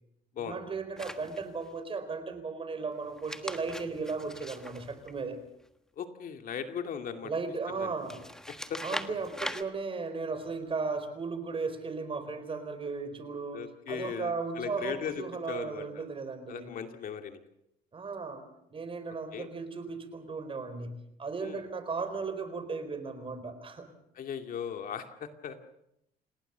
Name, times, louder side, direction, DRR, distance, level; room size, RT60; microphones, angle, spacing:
voice 1, 0.4-5.4 7.2-8.2 8.8-16.7 17.9-18.4 18.7-23.9, right 4 dB, 30° right, 10 dB, 4.3 m, -36 dB
sound 1, 1.0-1.7 3.1-5.7 8.0-9.6, left 1 dB, 5° left, 1.5 m, -41 dB
voice 2, 6.0-7.3 7.7-7.9 8.7-8.8 13.5-16.0 16.5-17.4 19.3-19.5 21.4-21.6 24.1-25.6, left 7 dB, 55° left, 6 dB, 2.5 m, -38 dB
28.0 x 18.5 x 6.9 m, 0.79 s
cardioid pair, 110°, 17 cm